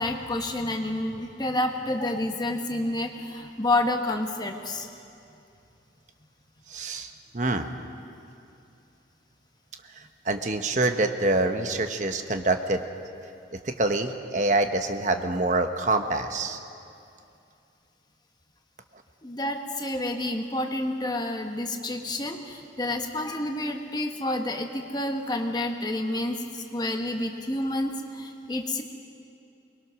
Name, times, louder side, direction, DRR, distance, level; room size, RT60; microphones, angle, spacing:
voice 1, 0.0-4.9 19.2-28.8, left 1 dB, 20° left, 4 dB, 1.2 m, -29 dB
voice 2, 6.7-7.7 9.9-12.9 13.6-16.6, right 2 dB, 40° right, 6 dB, 1.1 m, -26 dB
23.0 x 21.0 x 6.3 m, 2.6 s
head